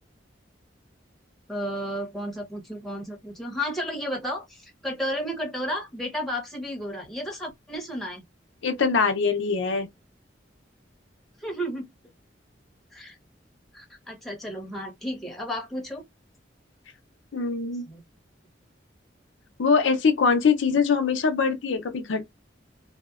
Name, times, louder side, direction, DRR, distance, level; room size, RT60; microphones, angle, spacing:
voice 1, 1.5-8.2 11.4-11.9 12.9-13.2 13.7-16.0 17.9-18.0, equal, ahead, 1.0 m, -32 dB
voice 2, 8.6-9.9 17.3-17.9 19.6-22.4, left 5 dB, 85° left, 0.5 m, -23 dB
2.7 x 2.1 x 2.3 m
head